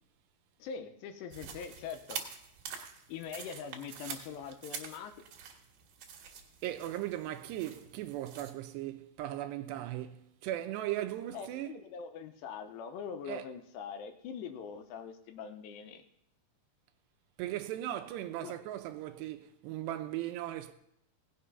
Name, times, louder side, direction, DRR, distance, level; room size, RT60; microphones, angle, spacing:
voice 1, 0.6-2.2 3.1-5.1 11.3-16.0 18.4-18.5, left 7 dB, 80° left, 2.8 m, -43 dB
sound 1, 1.3-8.5, right 7 dB, 60° right, 2.8 m, -46 dB
voice 2, 6.6-11.8 13.3-13.5 17.4-20.7, right 13 dB, 80° right, 2.7 m, -38 dB
18.0 x 6.7 x 5.5 m
omnidirectional pair, 5.2 m